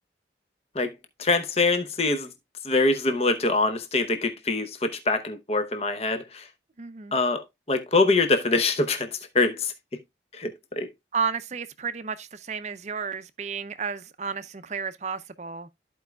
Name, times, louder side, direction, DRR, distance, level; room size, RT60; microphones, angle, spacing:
voice 1, 1.2-2.3 2.6-6.5 7.1-9.7 10.3-10.9, left 3 dB, 35° left, 0.8 m, -24 dB
voice 2, 6.8-7.2 11.1-15.7, right 5 dB, 40° right, 0.5 m, -32 dB
13.5 x 4.7 x 2.2 m
head